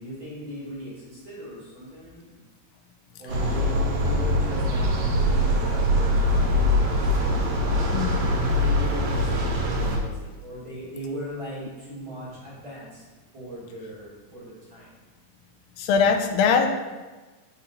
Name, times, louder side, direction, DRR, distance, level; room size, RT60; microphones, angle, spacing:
voice 1, 0.0-2.3 3.2-4.9 5.3-7.2 8.0-13.0 13.3-14.9, equal, 40° right, -8 dB, 2.7 m, -38 dB
sound 1, 3.3-10.0, left 1 dB, 80° right, 2.7 m, -23 dB
voice 2, 7.9-8.3 15.8-16.7, left 5 dB, 85° left, 4 dB, 2.3 m, -21 dB
9.1 x 4.3 x 3.9 m, 1.3 s
omnidirectional pair, 4.1 m